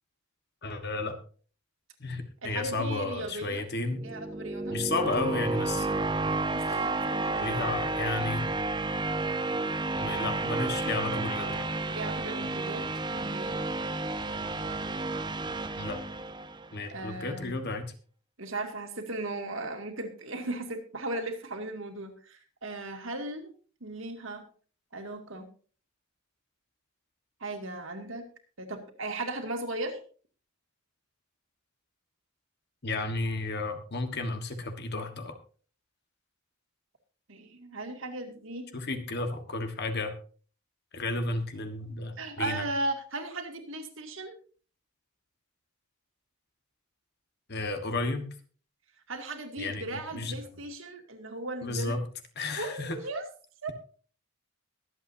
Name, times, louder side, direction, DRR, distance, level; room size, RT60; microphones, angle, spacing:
voice 1, 0.6-1.2 2.0-4.0 4.7-6.1 6.7-6.9 7.4-8.4 9.9-11.7 15.8-16.0 16.7-17.9 32.8-35.3 38.7-40.1 40.9-42.6 47.5-48.3 49.6-50.3 51.6-52.0 52.3-53.0, left 2 dB, 50° left, 7 dB, 1.5 m, -33 dB
voice 2, 2.4-3.7 4.0-4.8 6.5-7.7 11.9-12.9 13.1-13.6 16.9-17.5 18.4-23.5 23.8-24.4 24.9-25.5 27.4-28.2 28.6-30.0 37.3-38.7 42.2-44.3 49.1-52.0 52.5-53.2 53.6-53.7, right 2 dB, 65° right, 4 dB, 2.4 m, -37 dB
sound 1, 3.8-16.8, right 2 dB, 20° right, 0.8 m, -31 dB
22.5 x 8.4 x 2.7 m, 0.40 s
head